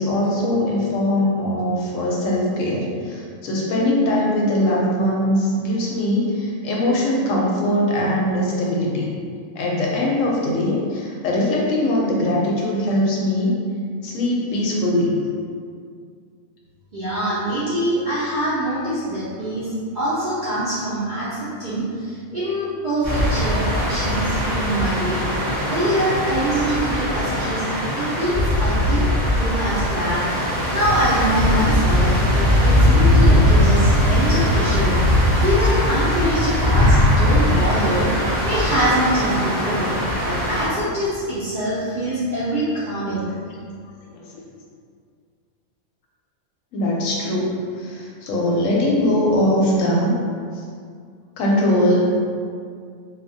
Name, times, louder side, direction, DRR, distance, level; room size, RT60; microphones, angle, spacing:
voice 1, 0.0-9.1 9.6-13.6 14.0-15.2 46.7-47.5 47.8-50.1 51.4-52.1, left 1 dB, 70° left, -3 dB, 0.9 m, -21 dB
voice 2, 16.9-19.7 19.9-25.3 25.7-27.6 28.0-29.1 29.3-35.0 35.4-38.1 38.4-39.9 40.2-43.3, right 1 dB, 60° right, -11 dB, 0.5 m, -24 dB
sound 1, 23.0-40.7, left 1 dB, 35° right, 0.8 m, -19 dB
3.1 x 2.2 x 2.6 m, 2.2 s
omnidirectional pair, 1.5 m